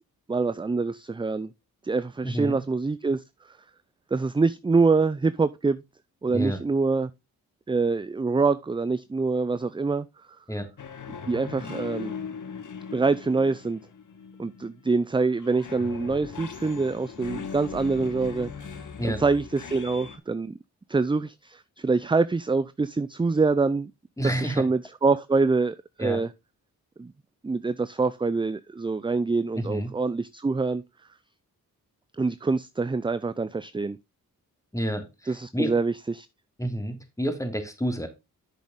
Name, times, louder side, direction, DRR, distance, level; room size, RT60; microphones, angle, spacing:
voice 1, 0.3-1.5 1.8-3.6 4.1-5.8 6.2-7.1 7.7-10.1 11.3-12.1 12.9-13.8 14.4-20.6 20.9-23.9 24.2-26.3 27.0-27.1 27.4-30.8 32.2-34.0 35.3-36.3, right 4 dB, 15° right, 0.5 m, -25 dB
voice 2, 2.2-2.6 6.3-6.6 10.5-10.7 19.0-19.2 24.2-24.7 26.0-26.2 29.6-30.0 34.7-35.7 36.6-38.1, equal, 10° left, 2.8 m, -29 dB
sound 1, 10.8-14.9 15.4-20.2, left 6 dB, 55° left, 1.5 m, -39 dB
8.2 x 6.4 x 3.8 m
supercardioid pair, 45°, 37 cm